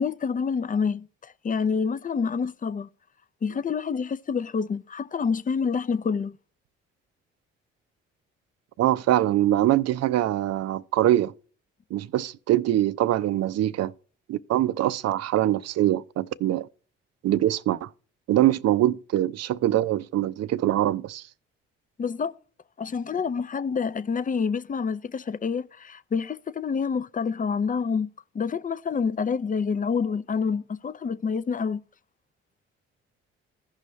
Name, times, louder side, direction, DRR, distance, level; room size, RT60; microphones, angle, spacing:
voice 1, 0.0-2.9 3.4-6.3 22.0-22.3 22.8-28.1 28.3-31.8, left 5 dB, 30° left, 0.5 m, -27 dB
voice 2, 8.8-11.3 11.9-13.9 14.3-16.7 17.2-17.9 18.3-21.2, right 13 dB, 60° right, 0.5 m, -23 dB
15.0 x 5.6 x 3.1 m
hypercardioid pair, 45°, 30 cm